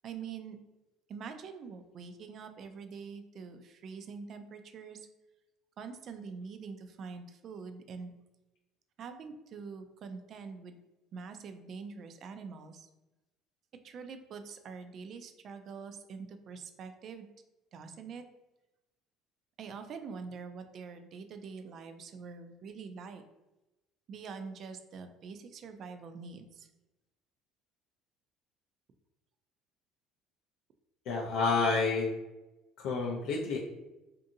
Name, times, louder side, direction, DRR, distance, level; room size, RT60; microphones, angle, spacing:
voice 1, 0.0-0.6 1.1-5.1 5.8-8.1 9.0-10.8 11.1-12.9 13.8-17.3 17.7-18.2 19.6-23.2 24.1-26.7, right 5 dB, 50° right, 8 dB, 0.3 m, -45 dB
voice 2, 31.1-32.1 32.8-33.6, left 4 dB, 70° left, -2 dB, 0.4 m, -29 dB
2.6 x 2.6 x 2.6 m, 1.0 s
supercardioid pair, 105°, 0 cm